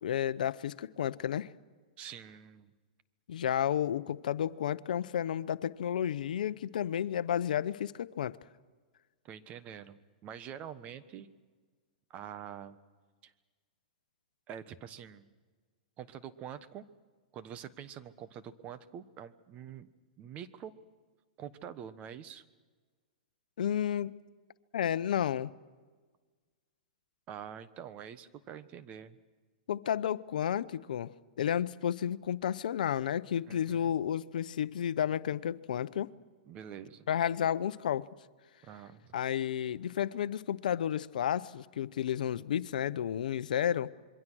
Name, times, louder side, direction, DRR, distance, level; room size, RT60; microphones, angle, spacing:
voice 1, 0.0-1.5 3.3-8.4 23.6-24.1 24.7-25.5 29.7-31.1 31.4-36.1 37.1-38.1 39.1-43.9, left 9 dB, 75° left, 0.7 m, -32 dB
voice 2, 2.0-2.7 9.2-11.3 12.1-12.8 13.2-13.3 14.5-15.3 16.0-16.9 17.3-19.9 20.2-20.7 21.4-22.4 27.3-29.2 33.5-34.0 36.5-37.1 38.6-39.2, right 9 dB, 30° right, 1.2 m, -46 dB
27.0 x 22.5 x 6.3 m
hypercardioid pair, 135°, 4 cm